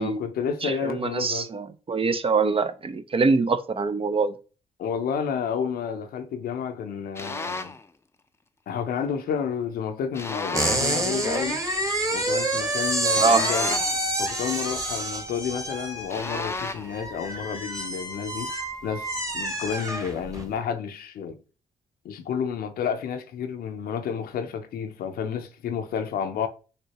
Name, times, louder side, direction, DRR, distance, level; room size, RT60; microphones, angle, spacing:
voice 1, 0.0-1.5 4.8-7.8 8.7-11.6 12.1-13.8 14.2-18.5 18.8-21.4 22.0-26.5, left 7 dB, 70° left, 0.6 m, -30 dB
voice 2, 0.6-4.3 13.2-13.4, right 4 dB, 35° right, 0.6 m, -24 dB
sound 1, 7.2-7.8 10.1-11.0 13.1-14.1 16.1-17.0, left 3 dB, 15° left, 0.5 m, -33 dB
sound 2, 10.5-20.5, right 1 dB, 20° right, 1.4 m, -28 dB
6.5 x 2.7 x 2.9 m
hypercardioid pair, 45°, 16 cm